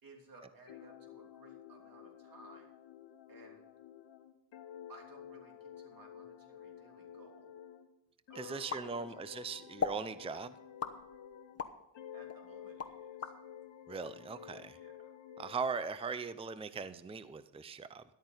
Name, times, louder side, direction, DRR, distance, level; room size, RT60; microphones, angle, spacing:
voice 1, 0.0-2.7 3.3-3.7 4.9-7.6 8.3-8.6 8.9-9.4 12.1-13.3 14.7-15.1, right 2 dB, 50° right, 2 dB, 3.2 m, -58 dB
sound 1, 0.7-7.9 8.3-11.6 11.9-15.6, left 9 dB, 75° left, 1.4 m, -52 dB
voice 2, 8.3-10.6 13.9-14.8 15.4-18.0, right 5 dB, 15° right, 13 dB, 0.6 m, -40 dB
sound 2, 8.7-9.4 9.8-10.1 10.8-11.8 12.3-13.4, left 6 dB, 35° left, 1.1 m, -38 dB
13.5 x 11.5 x 4.0 m, 0.91 s
cardioid pair, 110°, 45 cm